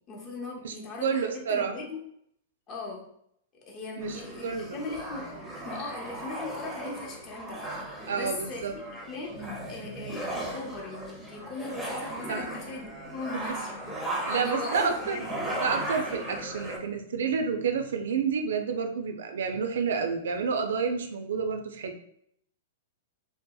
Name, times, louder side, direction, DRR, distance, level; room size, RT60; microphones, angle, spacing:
voice 1, 0.1-2.0 2.7-3.1 3.7-5.3 5.6-7.6 8.1-13.7 14.3-15.3, left 3 dB, 35° left, -1 dB, 0.7 m, -39 dB
voice 2, 1.0-1.7 4.0-4.8 8.1-8.7 12.3-12.4 13.3-13.6 14.0-15.3 15.6-22.0, right 6 dB, 70° right, 5 dB, 0.3 m, -29 dB
sound 1, 4.0-16.8, right 1 dB, 5° right, 0.5 m, -36 dB
2.7 x 2.1 x 2.2 m, 0.70 s
hypercardioid pair, 110°, 0 cm